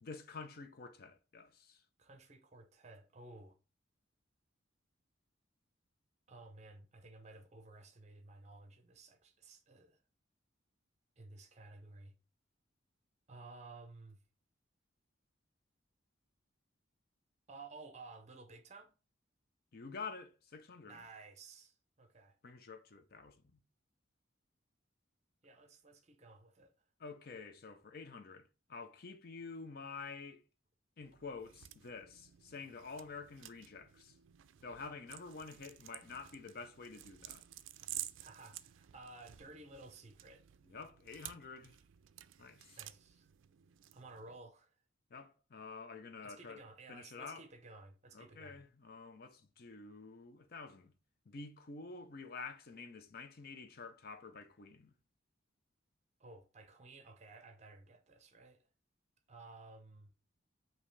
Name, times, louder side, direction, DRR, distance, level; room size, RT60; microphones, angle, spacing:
voice 1, 0.0-1.8 19.7-21.0 22.4-23.6 27.0-30.4 31.0-34.1 34.6-37.4 40.7-41.8 42.4-42.8 45.1-46.6 46.9-47.4 48.1-50.9 51.3-54.9, left 4 dB, 50° left, 0.6 m, -49 dB
voice 2, 2.0-3.5 6.3-10.0 11.2-12.1 13.3-14.2 17.5-18.9 20.9-22.4 25.4-26.7 38.2-40.4 42.8-43.3 43.9-44.8 46.2-48.6 56.2-58.6 59.3-60.1, right 3 dB, 35° right, 0.6 m, -55 dB
sound 1, 31.0-44.4, right 14 dB, 75° right, 0.3 m, -52 dB
5.3 x 2.8 x 3.1 m
head